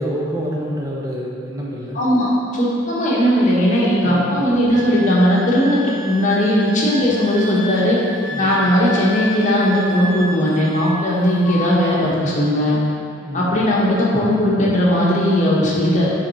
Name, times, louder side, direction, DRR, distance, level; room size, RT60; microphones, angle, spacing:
voice 1, 0.0-2.0 4.0-4.5 8.3-8.6 13.2-13.6, equal, 20° right, -4 dB, 0.8 m, -27 dB
voice 2, 1.9-8.0 8.4-12.8 13.3-16.1, equal, 40° left, -6 dB, 1.2 m, -17 dB
Wind instrument woodwind instrument, 4.7-11.1 11.4-12.0, equal, 5° left, 1.2 m, -31 dB
6.3 x 3.6 x 4.1 m, 2.4 s
head